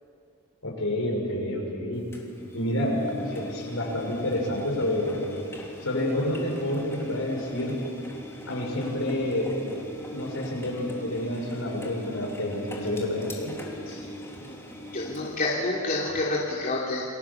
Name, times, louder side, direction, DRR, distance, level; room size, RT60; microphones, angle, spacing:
voice 1, 0.6-2.0 2.5-5.2 5.8-7.8 8.5-9.6 10.1-13.5, left 1 dB, 70° left, 0 dB, 6.4 m, -28 dB
Engine, 2.1-15.5, equal, 10° left, 3.4 m, -41 dB
voice 2, 14.9-17.0, left 2 dB, 40° left, -4 dB, 3.0 m, -28 dB
29.5 x 22.0 x 7.3 m, 2.6 s
head